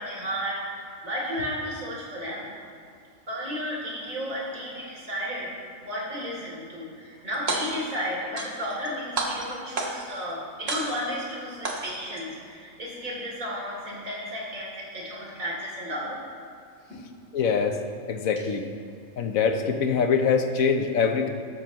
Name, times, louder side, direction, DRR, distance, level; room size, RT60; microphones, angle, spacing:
voice 1, 0.0-2.5 3.3-16.2 16.9-17.0, equal, 75° right, -4 dB, 3.5 m, -33 dB
sound 1, 7.3-7.9 8.4-8.9 9.2-10.2 10.7-11.2 11.6-12.2, right 2 dB, 50° right, 1.5 m, -30 dB
voice 2, 17.3-17.8 18.1-18.7 19.2-21.3, left 6 dB, 85° left, 5 dB, 1.3 m, -23 dB
13.0 x 13.0 x 3.1 m, 2.3 s
omnidirectional pair, 1.4 m